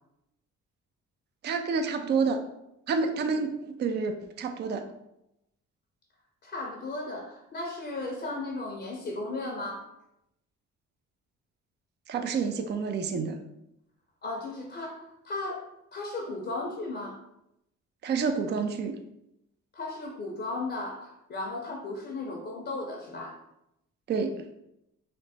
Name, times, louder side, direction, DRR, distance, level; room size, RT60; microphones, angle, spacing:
voice 1, 1.4-2.4 2.9-4.8 12.1-13.4 18.0-19.0 24.1-24.4, right 5 dB, 35° right, 6 dB, 0.4 m, -28 dB
voice 2, 6.4-9.9 14.2-17.2 19.7-23.4, left 2 dB, 35° left, 0 dB, 0.6 m, -35 dB
3.3 x 2.0 x 4.0 m, 0.84 s
cardioid pair, 90°, 30 cm